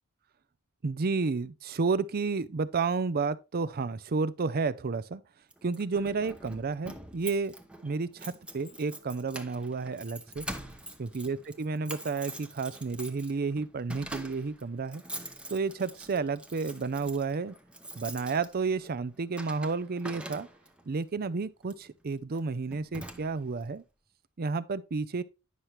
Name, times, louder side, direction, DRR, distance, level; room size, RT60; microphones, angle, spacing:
voice 1, 0.8-5.2 5.6-7.5 7.8-10.4 11.0-15.0 15.5-17.6 18.0-20.5 20.9-23.8 24.4-25.2, right 4 dB, 45° right, 0.5 m, -31 dB
Keys jangling, 5.5-20.9 21.6-21.9 22.3-22.5 22.7-23.6, right 1 dB, 5° right, 0.8 m, -45 dB
9.5 x 5.8 x 3.1 m
head